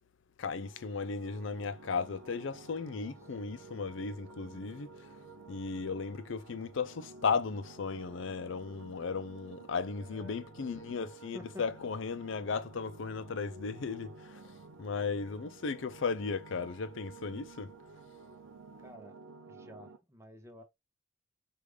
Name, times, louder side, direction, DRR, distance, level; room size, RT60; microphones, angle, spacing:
voice 1, 0.4-4.9 5.5-14.4 14.8-17.7, left 5 dB, 65° left, 0.5 m, -36 dB
sound 1, 0.5-20.0, right 4 dB, 70° right, 0.5 m, -52 dB
voice 2, 10.0-11.1 11.3-11.6 18.8-19.2 19.4-20.6, left 1 dB, 15° right, 0.7 m, -51 dB
4.9 x 2.5 x 3.2 m
head